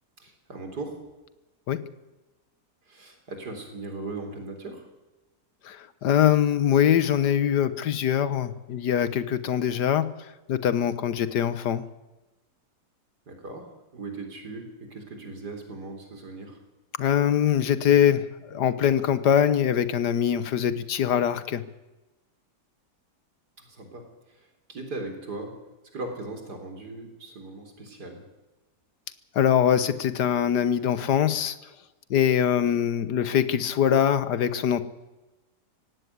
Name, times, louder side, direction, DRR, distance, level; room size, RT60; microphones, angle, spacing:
voice 1, 0.2-1.0 2.9-4.9 13.3-16.6 23.6-25.5 25.9-28.3, right 2 dB, 75° right, 4 dB, 4.4 m, -38 dB
voice 2, 5.6-10.1 10.5-11.8 17.0-21.6 29.3-31.6 32.1-34.8, left 9 dB, 80° left, 14 dB, 1.6 m, -23 dB
17.5 x 16.0 x 9.6 m, 1.1 s
omnidirectional pair, 1.8 m